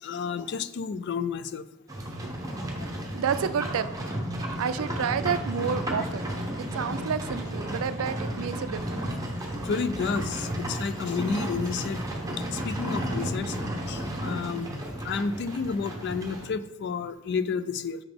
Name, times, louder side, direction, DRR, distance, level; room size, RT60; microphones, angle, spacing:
voice 1, 0.0-1.6 9.6-12.0 12.5-13.6 13.9-18.0, left 5 dB, 50° left, 13 dB, 0.3 m, -31 dB
Livestock farm animals working animals, 1.9-16.5, equal, 15° right, 0.9 m, -33 dB
voice 2, 3.1-3.9 4.6-6.3 6.6-9.1, right 7 dB, 65° right, 13 dB, 0.4 m, -30 dB
5.9 x 5.8 x 3.5 m, 0.93 s
head